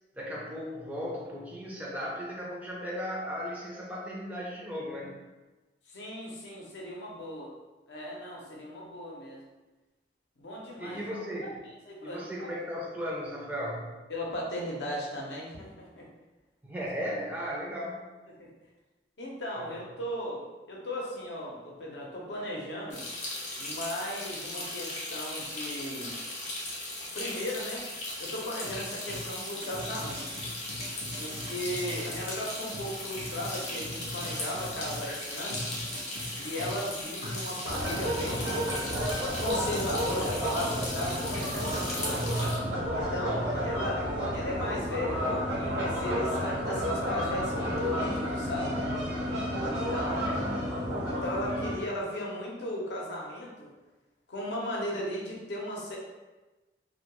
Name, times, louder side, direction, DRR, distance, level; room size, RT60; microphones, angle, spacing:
voice 1, 0.2-5.2 10.8-11.6 12.0-14.0 16.6-18.0 19.6-19.7 31.8-31.9 42.1-42.8 43.2-43.5, equal, 10° right, -4 dB, 0.4 m, -36 dB
voice 2, 5.9-7.5 7.9-9.4 10.4-11.5 11.9-12.5 14.1-16.1 18.4-18.5 19.2-23.0 23.6-26.1 27.1-27.9 28.2-30.5 31.2-35.6 36.4-38.7 39.4-42.2 42.9-44.1 44.3-48.8 49.6-50.7 51.1-53.7 54.3-56.0, left 1 dB, 80° left, -3 dB, 0.6 m, -36 dB
sound 1, 22.9-42.6, left 2 dB, 40° left, 0.6 m, -38 dB
sound 2, 28.6-35.1 35.5-42.4, equal, 65° right, 0.5 m, -42 dB
sound 3, 37.6-51.7, equal, 90° right, 0.8 m, -31 dB
2.2 x 2.1 x 2.9 m, 1.2 s
head